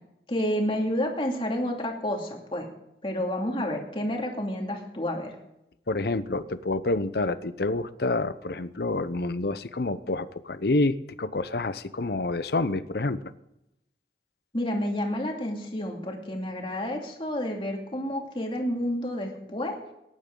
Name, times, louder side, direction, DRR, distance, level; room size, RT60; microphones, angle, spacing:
voice 1, 0.3-2.7 3.0-5.3 14.5-19.7, left 1 dB, 30° left, 1 dB, 2.5 m, -30 dB
voice 2, 5.9-13.2, left 2 dB, 60° left, 14 dB, 0.7 m, -28 dB
19.0 x 10.5 x 3.9 m, 0.85 s
head